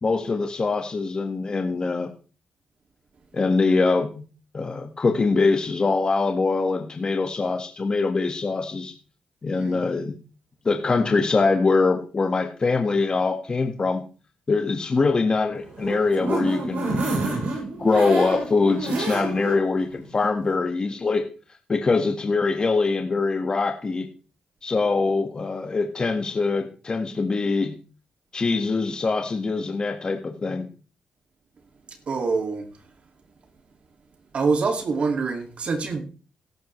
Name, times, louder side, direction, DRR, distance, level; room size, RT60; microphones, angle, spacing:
voice 1, 0.0-2.1 3.3-4.2 4.5-8.9 9.4-10.1 10.6-14.0 14.5-17.4 17.8-21.3 21.7-24.1 24.6-27.8 28.3-30.7, left 4 dB, 35° left, 4 dB, 1.7 m, -23 dB
voice 2, 9.5-9.8 32.1-32.6 34.3-36.0, right 4 dB, 55° right, 5 dB, 2.4 m, -25 dB
sound 1, 15.6-19.6 20.0-20.1 20.4-20.5, right 3 dB, 75° right, 7.2 m, -28 dB
15.5 x 12.0 x 3.3 m, 0.37 s
cardioid pair, 80°, 2 cm